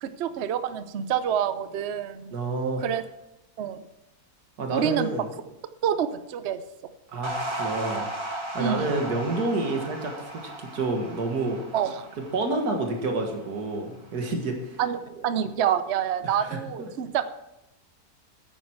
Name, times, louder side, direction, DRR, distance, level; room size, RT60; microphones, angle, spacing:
voice 1, 0.0-2.3 2.8-3.0 3.6-3.9 4.7-5.1 5.8-6.6 8.6-9.0 11.7-12.1 14.8-17.3, right 9 dB, 60° right, 11 dB, 0.8 m, -27 dB
voice 2, 2.3-2.8 4.6-5.3 7.1-8.2 8.5-11.6 12.3-14.8 16.2-16.9, right 2 dB, 80° right, 3 dB, 2.2 m, -29 dB
sound 1, 7.2-13.7, right 1 dB, 20° right, 1.6 m, -36 dB
10.0 x 9.1 x 4.7 m, 0.86 s
omnidirectional pair, 1.6 m